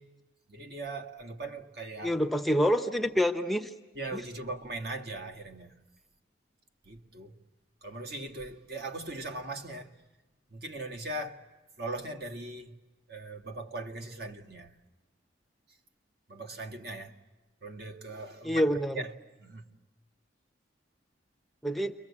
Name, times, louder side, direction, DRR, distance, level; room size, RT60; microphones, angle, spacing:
voice 1, 0.5-2.2 3.9-5.7 6.8-7.4 7.8-9.9 10.5-11.5 11.8-12.8 13.1-14.7 16.3-17.1 17.6-19.1 19.4-19.7, right 2 dB, 55° right, 2.0 m, -39 dB
voice 2, 2.0-3.7 18.4-19.0 21.6-21.9, equal, ahead, 0.8 m, -27 dB
29.5 x 23.5 x 8.5 m
head